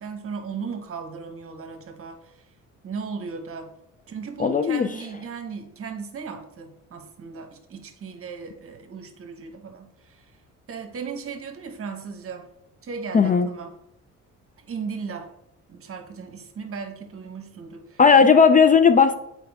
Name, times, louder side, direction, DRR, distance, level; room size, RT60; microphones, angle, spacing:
voice 1, 0.0-2.5 2.8-3.7 4.1-10.4 10.7-12.5 12.8-13.7 14.6-15.3 15.7-18.3, right 5 dB, 45° right, 6 dB, 1.1 m, -36 dB
voice 2, 4.4-4.9 13.1-13.5 18.0-19.1, left 5 dB, 25° left, 9 dB, 0.4 m, -15 dB
7.6 x 4.7 x 3.5 m, 0.83 s
cardioid pair, 90°, 30 cm